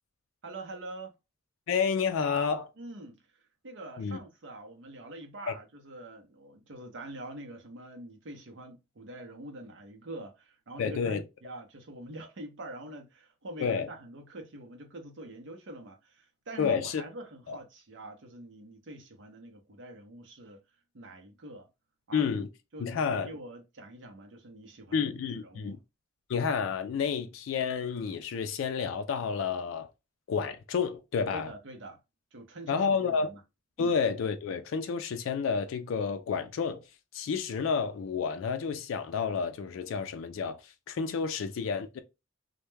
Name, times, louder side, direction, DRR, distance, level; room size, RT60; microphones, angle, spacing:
voice 1, 0.4-1.1 2.8-20.6 20.9-21.7 22.1-22.3 22.7-25.7 31.3-32.0 32.3-33.4 33.8-33.9, right 1 dB, 65° right, 0.6 m, -45 dB
voice 2, 1.7-2.7 4.0-4.2 5.5-5.6 10.8-11.2 13.6-13.9 16.6-17.0 17.5-17.6 22.1-22.5 22.8-23.3 24.9-25.8 26.3-29.9 30.3-31.5 32.7-33.3 33.8-36.8 37.1-42.0, left 6 dB, 80° left, 0.3 m, -30 dB
2.2 x 2.1 x 3.0 m
head